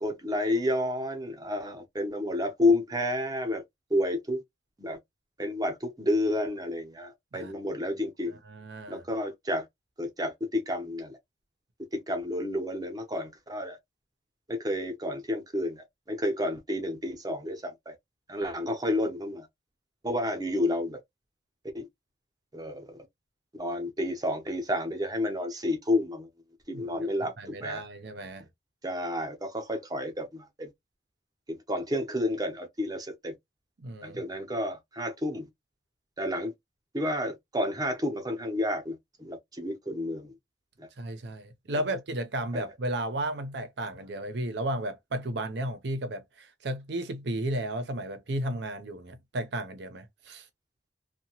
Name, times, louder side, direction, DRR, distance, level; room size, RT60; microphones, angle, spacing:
voice 1, 0.0-3.6 3.9-4.4 4.8-5.0 5.4-8.4 8.9-9.6 10.0-11.2 11.9-13.8 14.5-17.9 18.3-19.5 20.0-21.0 21.7-21.9 22.5-23.0 23.5-26.3 26.7-27.8 28.8-30.7 31.5-33.3 34.0-35.5 36.2-36.5 36.9-40.3 40.8-40.9 42.5-42.6, left 1 dB, 20° right, 0.7 m, -30 dB
voice 2, 8.5-9.0 26.7-28.5 33.8-34.2 41.0-50.5, right 1 dB, 65° right, 0.6 m, -34 dB
2.8 x 2.2 x 2.9 m
head